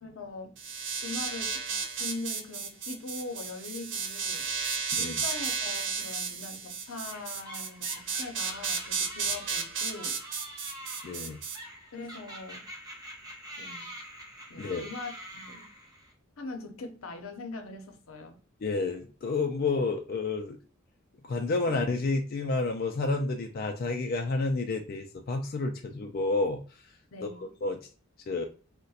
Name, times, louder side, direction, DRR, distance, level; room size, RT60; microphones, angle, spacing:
voice 1, 0.0-0.5 1.0-1.6 2.0-4.5 5.0-10.2 11.9-12.7 13.6-13.9 14.5-15.7 16.4-18.4 27.1-27.5, left 3 dB, 85° left, 0.6 m, -41 dB
sound 1, 0.6-11.6, right 5 dB, 60° right, 0.5 m, -33 dB
sound 2, 7.1-16.1, right 1 dB, 20° right, 0.6 m, -46 dB
voice 2, 11.0-11.4 14.6-14.8 18.6-20.6 21.3-26.6 27.2-27.3 27.6-27.8 28.3-28.5, left 3 dB, 45° left, 0.3 m, -30 dB
2.4 x 2.1 x 3.9 m
head